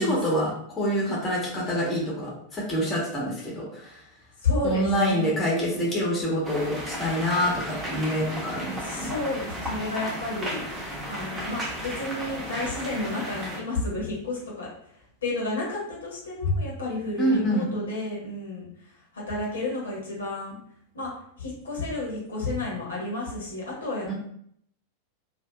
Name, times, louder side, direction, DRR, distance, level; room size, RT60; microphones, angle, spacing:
voice 1, 0.0-4.0 4.6-9.1 17.2-17.7 24.1-24.2, equal, 20° left, -4 dB, 0.9 m, -26 dB
voice 2, 4.4-5.4 8.8-10.6 11.1-14.7 15.2-18.7 19.1-20.6 20.9-21.1 21.4-24.1, left 2 dB, 70° left, -4 dB, 0.9 m, -30 dB
sound 1, 6.4-13.6, equal, 15° right, 0.8 m, -34 dB
2.6 x 2.4 x 2.3 m, 0.68 s
figure-of-eight pair, 90°, 0 cm